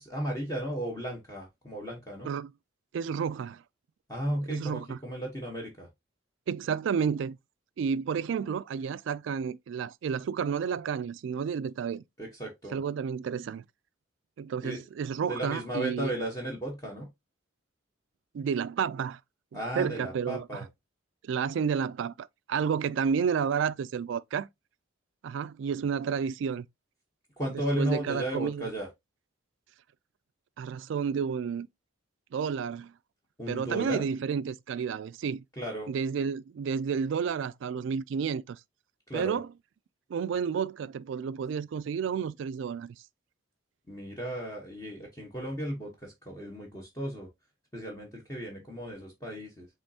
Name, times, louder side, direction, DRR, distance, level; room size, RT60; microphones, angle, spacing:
voice 1, 0.0-2.3 4.1-5.9 12.2-12.8 14.6-14.8 15.3-17.1 19.5-20.7 27.4-28.9 33.4-34.1 35.6-35.9 39.1-39.4 43.9-47.3 47.7-49.7, right 1 dB, 15° left, 1.0 m, -35 dB
voice 2, 2.9-3.6 4.5-5.0 6.5-7.4 7.8-12.0 12.7-13.6 14.4-16.1 18.3-19.2 19.5-20.7 21.2-24.5 25.2-26.7 27.8-28.7 30.6-31.7 32.3-32.9 33.5-35.4 35.9-38.6 39.1-39.5 40.1-43.0, right 6 dB, 65° right, 0.3 m, -31 dB
5.3 x 3.1 x 2.7 m
head